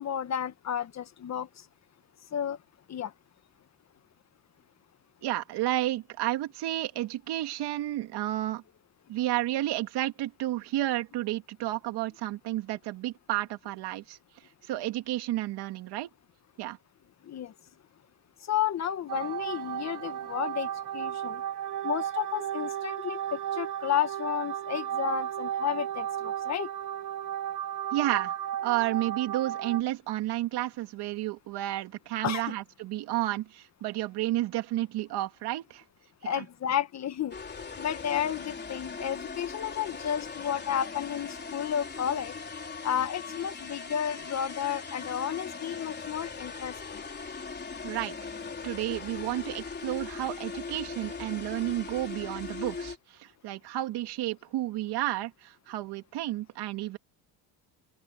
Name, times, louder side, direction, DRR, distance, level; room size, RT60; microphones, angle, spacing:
voice 1, 0.0-1.5 2.3-2.6 2.9-3.1 17.2-17.5 18.5-21.4 21.8-26.7 32.2-32.5 36.2-42.3 42.8-47.0, left 9 dB, 40° left, 1.5 m, -32 dB
voice 2, 5.2-8.6 9.1-14.2 14.7-16.1 16.6-16.8 27.9-28.3 28.6-35.8 36.2-36.4 47.8-48.2 48.6-57.0, right 15 dB, 70° right, 2.7 m, -31 dB
sound 1, 19.1-29.8, right 10 dB, 50° right, 2.2 m, -34 dB
sound 2, 37.3-53.0, left 4 dB, 25° left, 3.9 m, -40 dB
open air
cardioid pair, 120°, 40 cm